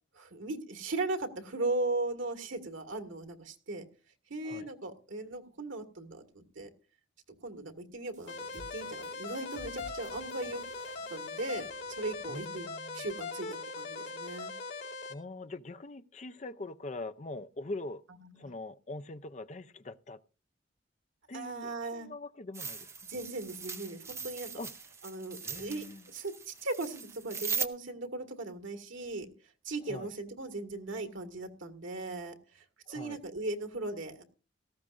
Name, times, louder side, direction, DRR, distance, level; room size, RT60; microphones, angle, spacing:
voice 1, 0.1-3.8 4.3-6.7 7.4-10.6 11.1-12.7 12.9-14.5 18.4-18.5 21.3-22.1 23.1-24.5 25.0-29.3 29.6-34.2, right 2 dB, 90° right, 1.8 m, -38 dB
sound 1, 8.1-12.3, equal, 45° right, 6.7 m, -54 dB
sound 2, 8.3-15.1, left 4 dB, 80° left, 2.8 m, -41 dB
voice 2, 12.3-13.1 15.1-18.0 18.3-20.2 21.3-22.9 24.6-24.7 25.4-26.0 29.9-30.1 32.9-33.2, left 2 dB, 35° left, 0.5 m, -43 dB
sound 3, 22.5-27.7, right 5 dB, 15° right, 0.6 m, -39 dB
18.0 x 14.5 x 2.5 m
head